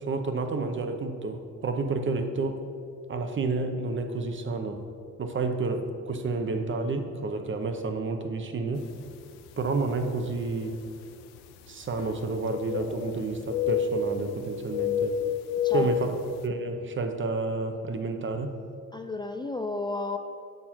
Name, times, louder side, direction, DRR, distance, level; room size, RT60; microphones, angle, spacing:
voice 1, 0.1-2.6 3.1-4.8 5.2-8.8 9.6-10.8 11.7-15.2 15.7-16.1 16.4-18.5, right 3 dB, 35° right, 6 dB, 0.8 m, -30 dB
sound 1, 9.1-9.2 10.0-10.1 12.0-13.2 13.5-14.3 14.7-16.1, left 7 dB, 90° left, 0.6 m, -28 dB
voice 2, 15.6-16.2 18.9-20.2, left 2 dB, 15° left, 5 dB, 0.3 m, -33 dB
6.6 x 4.2 x 5.8 m, 2.4 s
supercardioid pair, 80°, 37 cm